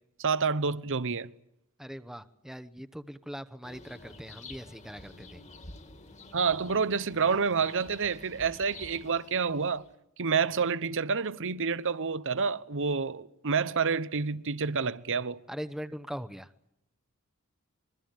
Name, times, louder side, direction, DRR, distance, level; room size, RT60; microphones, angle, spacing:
voice 1, 0.2-1.3 6.3-9.8 10.2-15.4, right 5 dB, 60° right, 1.0 m, -28 dB
voice 2, 1.8-5.4 15.5-16.5, equal, ahead, 1.0 m, -41 dB
sound 1, 3.6-9.9, left 2 dB, 30° left, 2.0 m, -50 dB
25.5 x 23.0 x 9.1 m
head